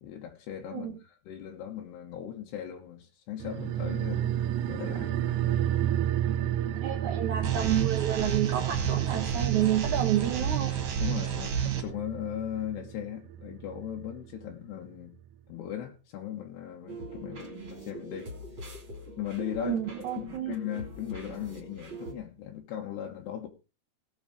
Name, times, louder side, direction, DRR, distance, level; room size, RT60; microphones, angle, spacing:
voice 1, 0.0-4.4 4.7-5.1 11.0-15.1 15.5-18.3 19.2-23.5, left 10 dB, 80° left, 3.6 m, -38 dB
sound 1, 3.4-14.3 14.5-14.6, right 11 dB, 90° right, 3.1 m, -32 dB
voice 2, 6.8-10.7 19.6-20.6, right 11 dB, 65° right, 2.0 m, -29 dB
sound 2, 7.4-11.8, right 9 dB, 50° right, 3.0 m, -30 dB
sound 3, 16.9-22.1, right 2 dB, 35° right, 3.3 m, -43 dB
18.0 x 7.1 x 4.9 m
omnidirectional pair, 4.7 m